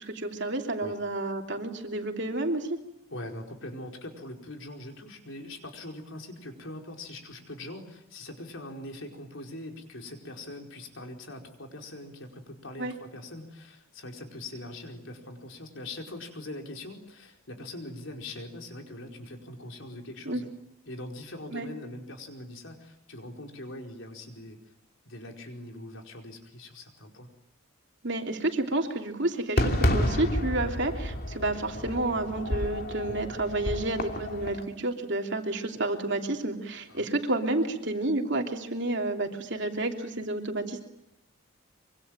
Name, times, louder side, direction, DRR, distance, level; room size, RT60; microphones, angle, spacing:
voice 1, 0.0-2.8 12.8-12.9 20.2-20.4 21.5-21.7 28.0-40.8, right 2 dB, 55° right, 3 dB, 3.1 m, -30 dB
voice 2, 3.1-20.5 20.9-24.6 25.0-27.3 36.9-37.1, left 1 dB, 60° left, 3 dB, 4.9 m, -42 dB
Fireworks, 29.6-34.6, left 1 dB, 45° left, 3.0 m, -30 dB
25.0 x 25.0 x 9.0 m, 0.80 s
head